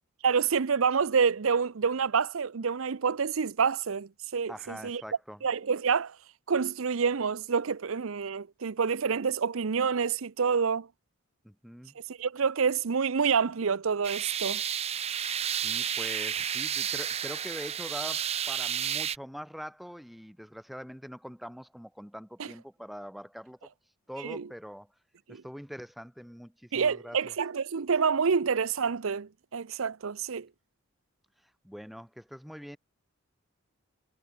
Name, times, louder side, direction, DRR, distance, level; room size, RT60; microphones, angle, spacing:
voice 1, 0.2-5.0 5.4-6.2 6.5-10.9 12.1-14.6 22.4-22.5 24.2-24.4 25.3-25.4 26.7-30.5, right 6 dB, 70° right, 0.6 m, -27 dB
voice 2, 4.5-5.4 11.4-12.0 15.5-23.7 24.1-24.9 25.3-27.3 31.6-32.8, equal, ahead, 2.0 m, -43 dB
sound 1, 14.0-19.2, right 9 dB, 30° right, 0.5 m, -31 dB
head